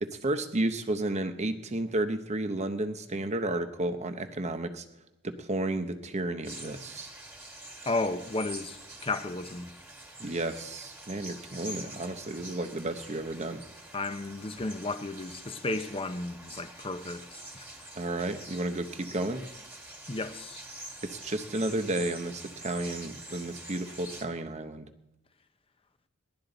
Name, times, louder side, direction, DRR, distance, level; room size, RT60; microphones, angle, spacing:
voice 1, 0.0-4.8 5.2-7.1 10.2-13.6 17.9-19.4 21.0-24.9, right 2 dB, 35° right, 0.9 m, -32 dB
sound 1, 6.4-24.2, right 1 dB, 10° right, 1.9 m, -46 dB
voice 2, 7.9-9.7 13.9-17.7 20.1-20.6, left 2 dB, 25° left, 0.7 m, -33 dB
19.5 x 11.5 x 4.0 m
head